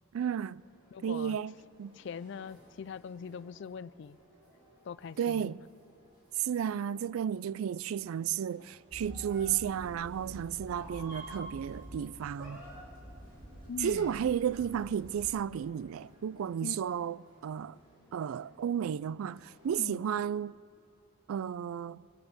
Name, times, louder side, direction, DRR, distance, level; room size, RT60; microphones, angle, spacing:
voice 1, 0.1-0.6 1.0-1.5 1.8-1.9 5.2-5.6 6.4-12.6 13.8-17.2 17.4-17.8 18.1-20.5 21.3-22.0, right 8 dB, 85° right, 0.3 m, -33 dB
sound 1, 0.6-19.8, equal, 25° right, 4.7 m, -63 dB
voice 2, 0.9-1.4 1.9-4.2 4.8-5.5 13.7-14.2 16.6-16.9 19.8-20.0, left 6 dB, 60° left, 0.4 m, -42 dB
Meow, 8.9-15.3, right 1 dB, 40° right, 3.1 m, -47 dB
22.0 x 7.9 x 8.1 m
head